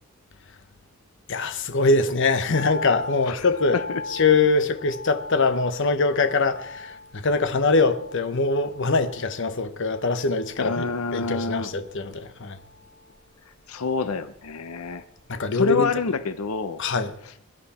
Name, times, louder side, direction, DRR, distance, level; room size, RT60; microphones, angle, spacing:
voice 1, 1.3-3.8 4.1-12.6 15.3-15.9 16.8-17.1, left 3 dB, 60° left, 1.0 m, -23 dB
sound 1, 2.5-14.8 15.1-15.2, left 3 dB, 40° left, 5.5 m, -40 dB
voice 2, 10.6-11.7 13.7-15.0 15.5-16.8, left 4 dB, 85° left, 0.8 m, -27 dB
22.5 x 11.0 x 4.3 m
head